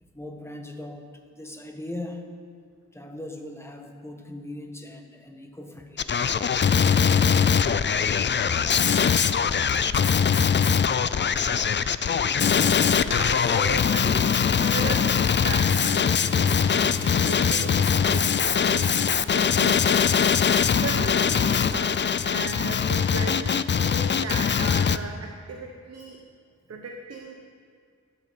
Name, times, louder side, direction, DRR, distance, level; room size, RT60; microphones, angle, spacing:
voice 1, 0.1-1.0 1.3-2.3 2.9-6.5 9.7-9.8 12.2-12.3 26.8-26.9, left 1 dB, 10° left, 3 dB, 1.3 m, -40 dB
Male speech man speaking, 6.0-25.0, left 7 dB, 40° left, 0.4 m, -22 dB
voice 2, 9.9-10.3 12.7-14.3 14.6-20.1 20.8-26.2 26.7-27.3, right 4 dB, 55° right, 3 dB, 1.1 m, -36 dB
sound 1, 13.2-18.6, equal, 30° right, 4.9 m, -45 dB
12.0 x 11.5 x 7.6 m, 2.2 s
wide cardioid pair, 160°, 30 cm